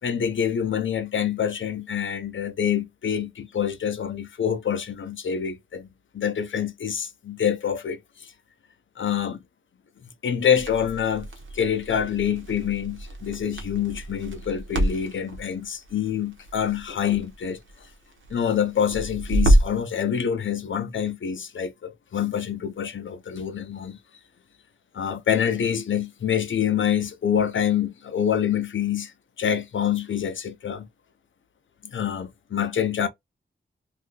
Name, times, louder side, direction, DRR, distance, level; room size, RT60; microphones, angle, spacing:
voice 1, 0.0-5.9 6.1-8.3 9.0-9.4 10.0-11.3 11.5-17.6 18.3-24.0 24.9-30.9 31.8-33.1, left 8 dB, 85° left, 0.6 m, -26 dB
Crackle, 10.5-19.9, right 1 dB, 85° right, 0.9 m, -27 dB
2.7 x 2.5 x 3.7 m
wide cardioid pair, 100°, 20 cm